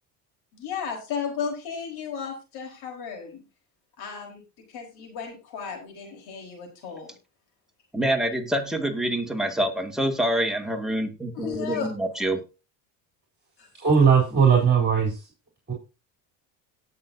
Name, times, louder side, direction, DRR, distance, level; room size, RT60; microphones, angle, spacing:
voice 1, 0.5-3.4 4.0-4.4 4.7-7.2 11.3-11.9 13.6-13.7, left 6 dB, 65° left, 2 dB, 4.6 m, -34 dB
voice 2, 7.9-12.5, right 1 dB, ahead, 2 dB, 2.2 m, -26 dB
voice 3, 13.7-15.3 15.7-15.8, right 6 dB, 25° right, -1 dB, 3.8 m, -19 dB
18.0 x 6.6 x 2.8 m, 0.31 s
supercardioid pair, 95°, 41 cm